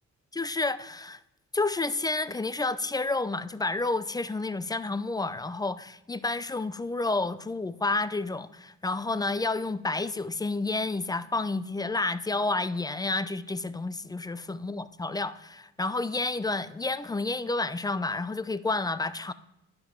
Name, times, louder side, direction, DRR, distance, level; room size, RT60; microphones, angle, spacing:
voice 1, 0.3-1.2 1.5-19.3, left 3 dB, 15° left, 0.4 m, -30 dB
10.0 x 5.4 x 5.9 m
cardioid pair, 90°, 30 cm